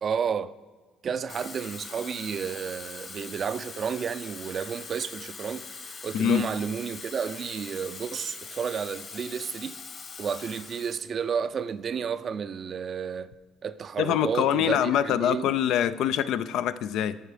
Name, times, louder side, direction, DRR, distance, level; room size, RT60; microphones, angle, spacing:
voice 1, 0.0-0.5 1.0-5.6 6.0-9.8 10.2-13.3 13.6-15.5, right 7 dB, 45° right, 0.4 m, -31 dB
Water tap faucet / Fill (with liquid), 1.1-11.1 11.4-11.7, left 4 dB, 45° left, 1.5 m, -42 dB
voice 2, 14.0-17.2, left 10 dB, 75° left, 0.4 m, -24 dB
13.5 x 4.7 x 4.9 m
supercardioid pair, 80°, 0 cm